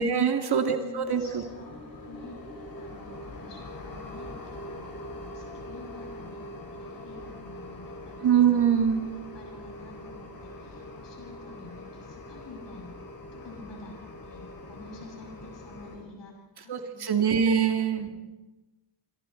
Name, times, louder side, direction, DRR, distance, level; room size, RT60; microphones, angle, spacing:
voice 1, 0.0-1.4 8.2-9.0 16.7-18.1, right 7 dB, 65° right, 5 dB, 2.3 m, -23 dB
voice 2, 0.7-1.7 2.1-2.4 2.8-4.9 5.2-8.5 9.3-13.0 13.3-14.0 14.2-17.0 17.4-18.2, left 3 dB, 75° left, -2 dB, 7.6 m, -48 dB
sound 1, 1.0-16.0, left 1 dB, 55° left, 5.8 m, -43 dB
28.5 x 28.0 x 4.5 m, 1.1 s
wide cardioid pair, 115°, 42 cm